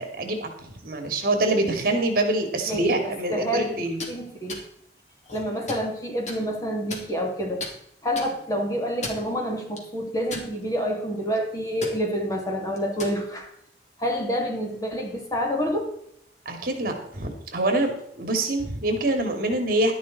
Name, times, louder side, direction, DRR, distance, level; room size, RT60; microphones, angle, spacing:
voice 1, 0.0-4.0 16.5-19.9, right 2 dB, 55° right, 5 dB, 2.5 m, -25 dB
voice 2, 2.7-4.6 5.3-7.7 8.0-13.5 14.0-15.9, equal, 20° left, 1 dB, 2.5 m, -28 dB
sound 1, 3.8-4.1 4.5-4.6 5.2-5.9 6.3-6.4 6.9-7.3 7.6-7.7 8.1-8.3 8.9-9.3 9.8-9.9 10.3-10.8 11.2-11.4 11.8-12.0 12.8-13.2, left 2 dB, 40° left, 2.9 m, -35 dB
12.0 x 11.5 x 4.1 m, 0.70 s
head